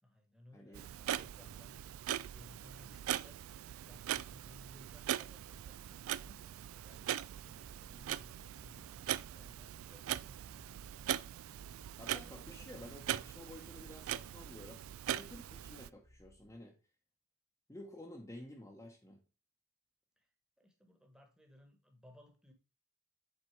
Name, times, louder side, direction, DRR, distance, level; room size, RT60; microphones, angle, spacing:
voice 1, 0.0-3.6 3.8-6.5 6.8-8.9 9.3-10.7 12.0-12.8 20.2-20.3 20.6-22.5, left 1 dB, 5° right, 3 dB, 1.2 m, -61 dB
voice 2, 0.5-0.9 12.0-14.8 15.1-16.7 17.7-19.2, left 1 dB, 15° left, -1 dB, 0.9 m, -52 dB
Clock, 0.7-15.9, right 11 dB, 75° right, 0.3 m, -41 dB
sound 1, 7.4-16.6, left 1 dB, 60° left, 1.6 m, -66 dB
7.7 x 4.2 x 4.6 m, 0.32 s
head